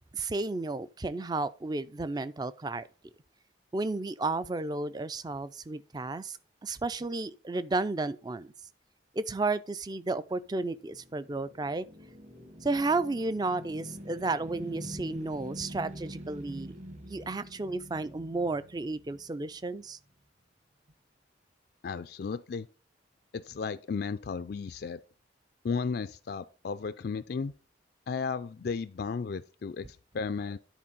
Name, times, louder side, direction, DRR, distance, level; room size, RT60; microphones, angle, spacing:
voice 1, 0.1-2.9 3.7-8.5 9.1-11.9 12.6-16.7 17.1-20.0, right 3 dB, 20° right, 0.4 m, -32 dB
sound 1, 10.4-19.7, equal, 40° right, 1.4 m, -45 dB
voice 2, 21.8-22.7 23.3-25.0 25.6-27.5 28.1-30.6, left 5 dB, 55° left, 0.4 m, -34 dB
10.0 x 4.3 x 5.4 m
head